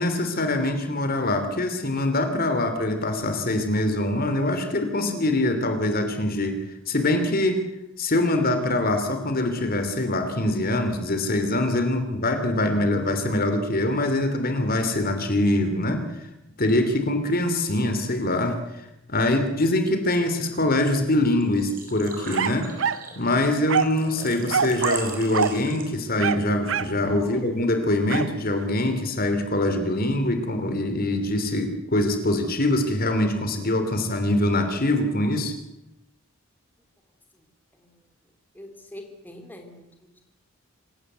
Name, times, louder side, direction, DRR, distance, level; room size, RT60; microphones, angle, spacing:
voice 1, 0.0-6.6 6.9-7.6 8.0-16.0 16.6-18.6 19.1-22.7 23.2-35.5, left 1 dB, 45° left, 7 dB, 3.0 m, -24 dB
Engine / Trickle dribble / Fill (with liquid), 21.3-26.2, right 4 dB, 45° right, 5.2 m, -39 dB
sound 1, 22.3-23.1 23.7-24.0 24.5-25.1 25.3-25.6 26.2-27.0 28.1-28.3, right 6 dB, 65° right, 0.7 m, -25 dB
voice 2, 38.5-40.2, left 1 dB, 10° left, 3 dB, 3.1 m, -45 dB
26.5 x 16.0 x 8.1 m, 0.90 s
head